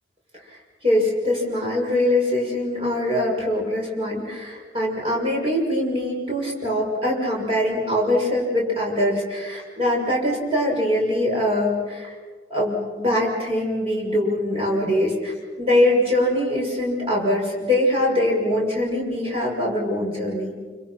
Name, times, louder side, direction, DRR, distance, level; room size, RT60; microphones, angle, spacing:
voice 1, 0.8-12.1 12.5-20.5, left 1 dB, 30° right, -3 dB, 6.8 m, -23 dB
28.5 x 26.5 x 6.0 m, 1.5 s
head